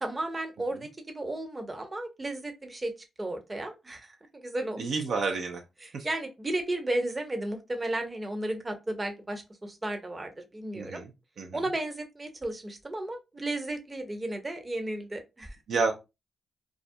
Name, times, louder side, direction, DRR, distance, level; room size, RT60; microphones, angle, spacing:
voice 1, 0.0-4.8 5.8-11.0 11.5-15.6, right 1 dB, 30° right, 0.7 m, -34 dB
voice 2, 4.8-5.6 5.9-6.0 10.7-11.1 11.4-11.6 15.7-15.9, right 4 dB, 70° right, 0.4 m, -29 dB
2.3 x 2.1 x 2.6 m
cardioid pair, 55°, 0 cm